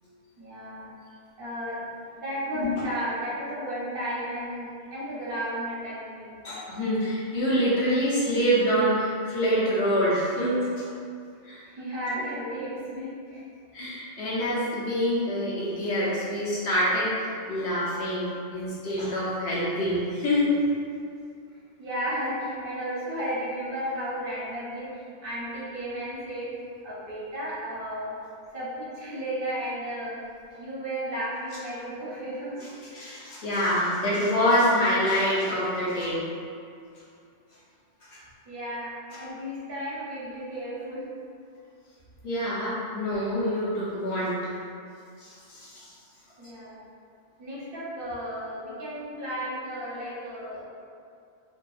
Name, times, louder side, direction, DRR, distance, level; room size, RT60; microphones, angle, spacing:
voice 1, 0.4-0.9 1.4-1.8 2.1-6.4 11.7-13.4 21.8-26.5 26.8-28.1 28.5-30.2 30.6-32.6 38.5-41.0 46.4-46.8 47.4-50.6, equal, 55° right, -8 dB, 0.9 m, -34 dB
voice 2, 2.5-2.8 6.4-10.9 11.4-11.6 13.7-20.5 32.9-36.3 38.1-38.2 42.2-44.6 45.2-45.9, equal, 65° left, -8 dB, 0.9 m, -26 dB
2.7 x 2.2 x 2.3 m, 2.4 s
omnidirectional pair, 1.2 m